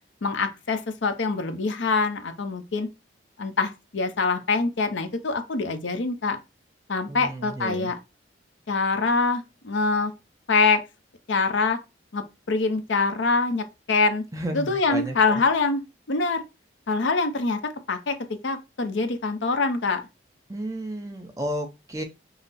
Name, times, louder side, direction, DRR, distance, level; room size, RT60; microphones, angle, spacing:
voice 1, 0.2-2.9 3.4-6.4 6.9-8.0 8.7-10.1 10.5-10.8 11.3-11.8 12.1-14.2 14.5-15.8 16.1-16.4 16.9-17.6 17.9-18.2 18.4-20.0, left 4 dB, 75° left, 0.7 m, -24 dB
voice 2, 7.1-7.9 14.3-15.4 20.5-22.0, equal, 15° right, 0.6 m, -32 dB
5.6 x 2.0 x 4.1 m
head